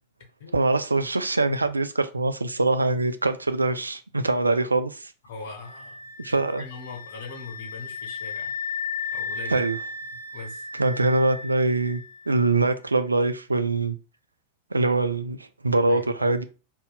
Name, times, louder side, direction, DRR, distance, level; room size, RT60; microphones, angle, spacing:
voice 1, 0.5-5.1 6.2-6.6 9.5-9.8 10.8-14.0 14.7-16.4, right 2 dB, 80° right, 0.3 m, -23 dB
voice 2, 5.2-6.0 6.3-8.5 9.1-9.7 10.3-10.7 15.8-16.3, left 3 dB, 55° left, 1.0 m, -41 dB
sound 1, 5.6-12.4, left 4 dB, 70° left, 0.4 m, -35 dB
2.7 x 2.0 x 3.8 m
figure-of-eight pair, 90°, 0 cm